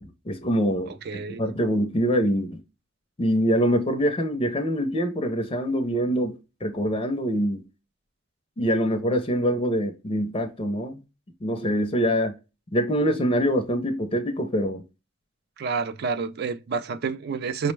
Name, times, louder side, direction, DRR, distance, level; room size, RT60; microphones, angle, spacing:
voice 1, 0.0-2.6 3.2-7.6 8.6-11.0 11.4-12.4 12.7-14.8, equal, 25° left, 0.5 m, -24 dB
voice 2, 1.1-1.4 15.6-17.7, right 5 dB, 50° right, 0.4 m, -29 dB
5.2 x 2.1 x 3.1 m
head